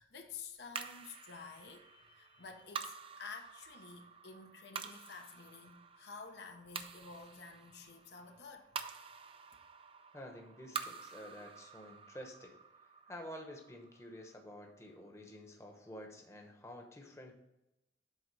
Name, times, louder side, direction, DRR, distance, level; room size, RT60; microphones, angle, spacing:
voice 1, 0.0-8.8, left 5 dB, 70° left, 0.8 m, -51 dB
sound 1, 0.7-15.3, right 6 dB, 30° right, 0.4 m, -49 dB
voice 2, 10.1-12.6 13.1-17.3, equal, 15° left, 1.0 m, -50 dB
8.1 x 3.6 x 5.3 m
head